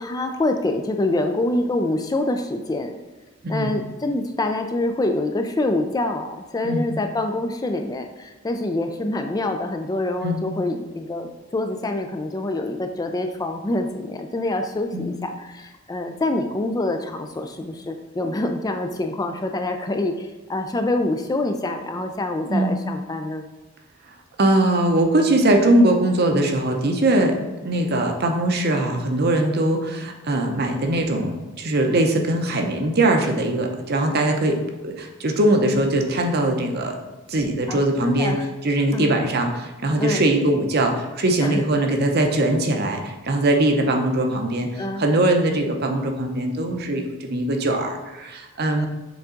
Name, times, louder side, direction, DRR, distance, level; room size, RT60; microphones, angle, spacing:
voice 1, 0.0-2.9 3.5-23.4 37.7-38.4 38.9-39.2 40.0-40.2 41.4-41.6 44.8-45.2, left 2 dB, 20° left, 5 dB, 0.3 m, -26 dB
voice 2, 3.4-3.8 6.6-6.9 10.2-10.5 14.9-15.1 22.5-22.8 24.4-37.0 37.3-48.9, right 1 dB, 50° right, 3 dB, 0.7 m, -21 dB
7.0 x 3.6 x 3.8 m, 1.1 s
head